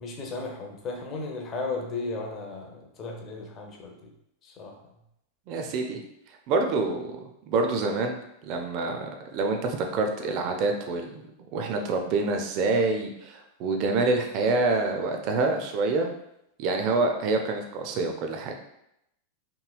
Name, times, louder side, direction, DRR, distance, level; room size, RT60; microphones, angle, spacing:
voice 1, 0.0-3.9 4.4-4.8, left 3 dB, 30° left, 1 dB, 0.6 m, -35 dB
voice 2, 5.5-6.0 6.5-7.2 7.5-11.2 11.5-16.1 16.6-18.5, right 3 dB, 40° right, 4 dB, 0.4 m, -26 dB
3.0 x 2.8 x 2.2 m, 0.81 s
figure-of-eight pair, 90°, 0 cm